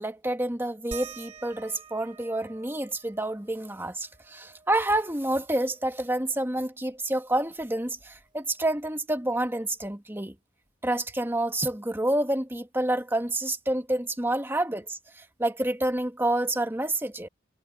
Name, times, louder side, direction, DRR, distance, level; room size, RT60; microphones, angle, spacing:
voice 1, 0.0-10.4 10.8-17.3, right 1 dB, 10° right, 1.8 m, -28 dB
sound 1, 0.9-6.0 6.4-6.5 6.8-8.6 9.8-9.9 10.7-10.8, right 6 dB, 25° right, 5.1 m, -49 dB
head